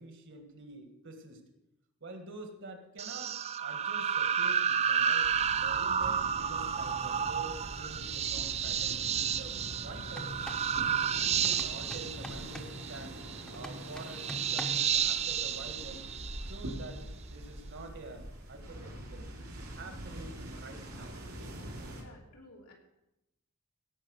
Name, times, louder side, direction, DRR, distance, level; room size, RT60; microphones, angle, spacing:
voice 1, 0.0-1.4 2.0-5.3 5.6-10.7 11.2-13.2 13.5-16.1 16.5-21.2, right 2 dB, 60° right, 6 dB, 1.8 m, -47 dB
sound 1, 3.0-16.9, right 8 dB, 30° right, 0.4 m, -31 dB
sound 2, 5.2-22.0, right 1 dB, 90° right, 3.1 m, -44 dB
sound 3, 10.1-10.7 11.4-12.8 13.5-14.9, left 1 dB, 5° left, 0.9 m, -44 dB
voice 2, 21.8-22.7, left 1 dB, 85° left, -1 dB, 3.1 m, -55 dB
17.0 x 5.8 x 6.5 m, 0.89 s
head